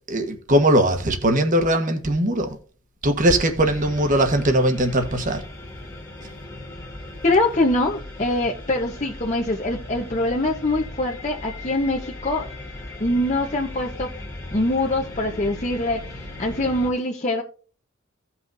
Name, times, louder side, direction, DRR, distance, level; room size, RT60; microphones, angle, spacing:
voice 1, 0.1-2.6 3.0-5.4, right 1 dB, 35° right, 1.3 m, -20 dB
sound 1, 3.6-16.9, left 2 dB, 15° left, 1.9 m, -37 dB
voice 2, 7.2-12.5 13.0-14.1 14.5-16.0 16.4-17.4, left 2 dB, 35° left, 1.0 m, -23 dB
16.5 x 5.7 x 2.7 m
head